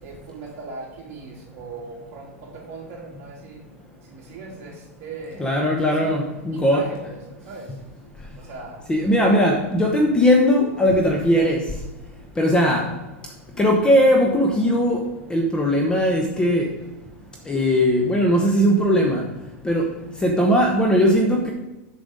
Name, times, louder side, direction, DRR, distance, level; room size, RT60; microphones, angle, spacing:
voice 1, 0.0-3.6 4.0-5.5 5.8-7.8 8.3-8.8 9.3-9.4 11.4-11.5, right 3 dB, 40° right, -4 dB, 3.3 m, -39 dB
voice 2, 5.4-6.8 8.9-11.6 12.4-12.9 13.6-15.0 15.3-16.7 17.5-19.2 19.6-19.9 20.2-21.5, equal, 10° left, 1 dB, 0.9 m, -19 dB
7.1 x 6.6 x 5.4 m, 1.1 s
supercardioid pair, 140°, 8 cm